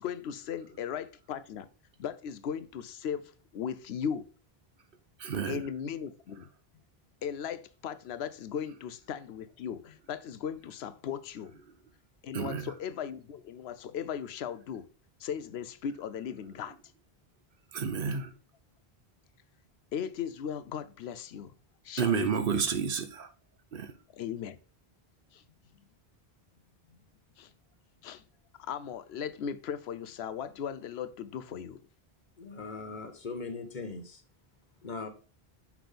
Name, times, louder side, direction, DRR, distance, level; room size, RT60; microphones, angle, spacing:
voice 1, 0.0-1.7 2.0-4.2 5.4-6.5 7.2-11.6 12.2-14.9 15.2-16.8 19.9-21.5 21.8-22.7 24.1-24.6 25.3-25.4 26.9-27.0 27.4-27.5 28.0-28.2 28.6-31.8, left 8 dB, 90° left, 0.9 m, -37 dB
voice 2, 5.2-5.6 12.3-12.7 17.7-18.3 22.0-23.3 23.7-23.9, right 6 dB, 65° right, 0.9 m, -30 dB
voice 3, 32.4-34.2 34.8-35.1, left 4 dB, 50° left, 1.2 m, -39 dB
6.0 x 5.9 x 3.4 m
omnidirectional pair, 1.0 m